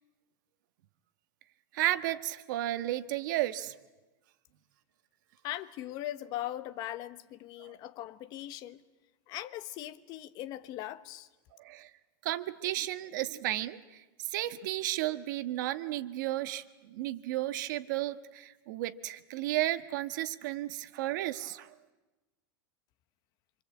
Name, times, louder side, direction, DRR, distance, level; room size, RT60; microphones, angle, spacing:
voice 1, 1.7-3.7 7.6-7.8 11.6-11.9 12.2-21.7, right 15 dB, 60° right, 1.5 m, -33 dB
voice 2, 5.4-8.8 9.3-11.3, left 13 dB, 35° left, 1.2 m, -40 dB
27.0 x 26.0 x 8.5 m
supercardioid pair, 165°, 11 cm